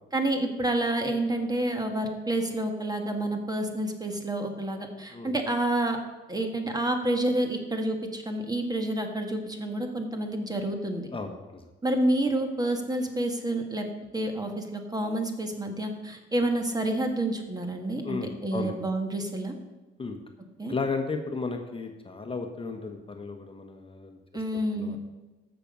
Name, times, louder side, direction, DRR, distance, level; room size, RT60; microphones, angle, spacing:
voice 1, 0.1-6.0 6.3-11.1 11.8-13.8 14.1-19.5 20.6-20.7 24.3-25.0, right 1 dB, 20° right, 5 dB, 1.6 m, -29 dB
voice 2, 11.1-11.6 18.0-18.8 20.0-20.2 20.7-24.4 24.7-25.0, left 4 dB, 25° left, 4 dB, 1.1 m, -34 dB
14.5 x 6.1 x 5.3 m, 1.2 s
cardioid pair, 90°, 20 cm